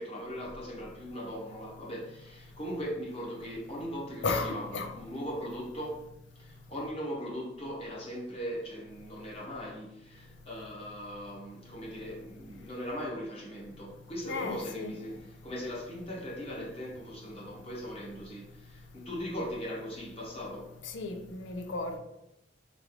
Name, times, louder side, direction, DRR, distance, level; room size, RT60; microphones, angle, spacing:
voice 1, 0.0-6.0 6.4-20.7, equal, 35° left, 1.2 m, -39 dB
voice 2, 4.2-4.9 14.2-14.9 20.8-22.0, left 3 dB, 80° left, 0.5 m, -34 dB
3.7 x 3.3 x 3.1 m
head